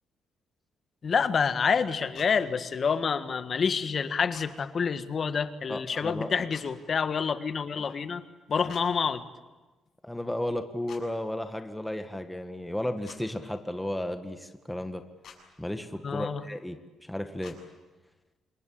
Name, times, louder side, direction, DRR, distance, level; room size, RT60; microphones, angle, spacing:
voice 1, 1.0-8.2 8.5-9.2 16.0-16.4, left 6 dB, 45° left, 11 dB, 1.6 m, -28 dB
sound 1, 2.1-2.3 4.3-4.5 6.5-6.7 8.7-8.8 10.9-11.0 13.0-13.2 15.2-15.4 17.4-17.6, left 8 dB, 70° left, 7.2 m, -48 dB
voice 2, 5.7-6.4 10.0-15.0 15.6-17.6, left 1 dB, 5° left, 7 dB, 1.7 m, -34 dB
26.5 x 22.5 x 8.7 m, 1.2 s
cardioid pair, 90°, 0 cm